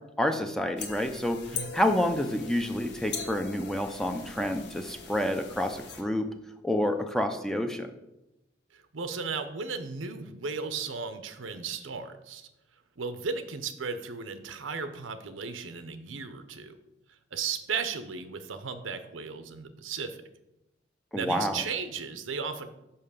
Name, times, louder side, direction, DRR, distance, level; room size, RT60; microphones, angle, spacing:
voice 1, 0.2-1.4 1.7-6.3 6.6-7.9 21.1-21.6, left 1 dB, ahead, 6 dB, 0.5 m, -28 dB
sound 1, 0.8-6.0, left 5 dB, 60° left, 1.1 m, -41 dB
voice 2, 8.7-12.5 13.0-16.8 17.3-20.2 21.1-22.7, right 5 dB, 85° right, 9 dB, 0.8 m, -35 dB
5.7 x 5.6 x 6.6 m, 0.92 s
head